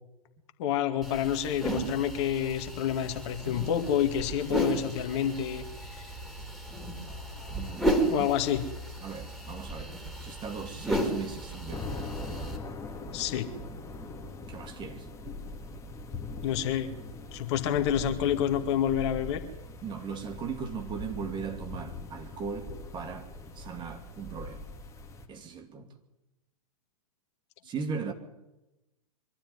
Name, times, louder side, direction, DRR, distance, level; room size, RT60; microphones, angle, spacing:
voice 1, 0.6-6.1 7.1-7.7 8.1-8.6 13.1-13.5 16.4-17.0 17.3-19.4, left 9 dB, 45° left, 2.2 m, -29 dB
sound 1, 1.0-12.6, right 1 dB, ahead, 3.9 m, -34 dB
voice 2, 7.5-8.3 9.0-11.9 14.5-15.1 19.8-23.3 23.6-24.6 25.3-25.9 27.6-28.1, right 6 dB, 25° right, 2.5 m, -38 dB
sound 2, 11.7-25.3, left 3 dB, 15° left, 2.3 m, -41 dB
23.5 x 13.0 x 9.6 m
figure-of-eight pair, 110°, 19 cm